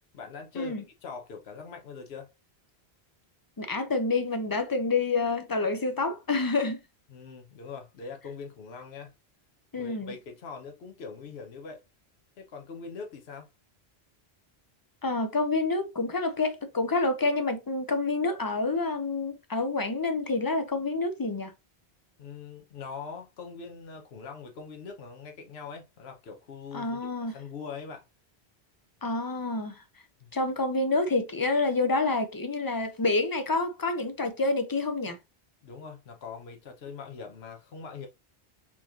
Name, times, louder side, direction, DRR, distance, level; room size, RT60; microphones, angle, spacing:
voice 1, 0.1-2.3 7.1-9.1 9.7-11.8 12.4-13.5 22.2-28.0 30.2-30.3 35.6-38.1, left 5 dB, 75° left, 1.1 m, -42 dB
voice 2, 3.6-6.8 9.7-10.1 15.0-21.5 26.7-27.3 29.0-29.8 30.3-35.2, left 3 dB, 35° left, 0.3 m, -28 dB
4.3 x 3.0 x 2.6 m
omnidirectional pair, 1.1 m